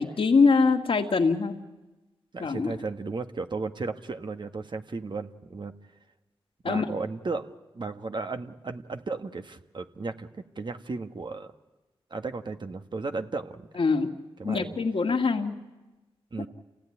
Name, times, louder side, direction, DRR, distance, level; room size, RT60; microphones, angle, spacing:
voice 1, 0.0-1.6 2.4-2.7 6.6-6.9 13.8-14.1 14.4-15.6, left 4 dB, 60° left, 4 dB, 1.9 m, -23 dB
voice 2, 2.3-5.7 6.6-11.5 12.1-13.7 14.4-14.8 16.3-16.5, right 3 dB, 50° right, 7 dB, 1.4 m, -35 dB
28.0 x 17.0 x 9.9 m, 1.1 s
cardioid pair, 55°, 10 cm